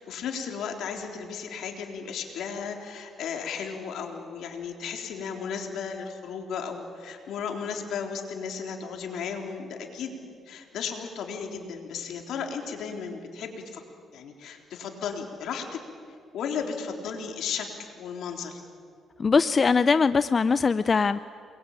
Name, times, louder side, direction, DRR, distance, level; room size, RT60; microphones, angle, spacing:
voice 1, 0.0-10.2 10.5-13.8 14.1-15.8 16.3-18.6, left 6 dB, 75° left, 3 dB, 3.8 m, -35 dB
voice 2, 19.2-21.2, left 5 dB, 35° left, 13 dB, 0.6 m, -21 dB
28.5 x 22.0 x 9.0 m, 2.2 s
cardioid pair, 90°, 0 cm